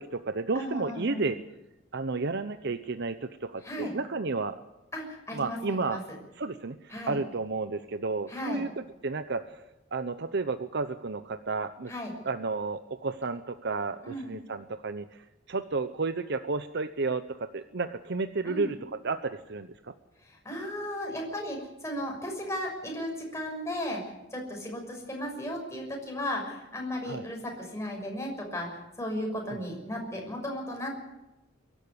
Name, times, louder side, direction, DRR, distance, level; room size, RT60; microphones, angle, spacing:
voice 1, 0.0-1.4 1.9-4.6 5.3-6.0 6.4-9.6 9.9-11.9 12.2-18.8 19.0-19.9 27.0-27.2 29.5-29.6, right 3 dB, 60° right, 10 dB, 0.8 m, -32 dB
voice 2, 0.5-1.2 3.6-3.9 4.9-6.0 6.9-7.2 8.3-8.6 11.9-12.1 14.0-14.4 18.4-18.7 20.2-24.0 24.3-31.0, equal, 15° left, 0 dB, 6.2 m, -35 dB
23.5 x 12.0 x 9.8 m, 0.99 s
head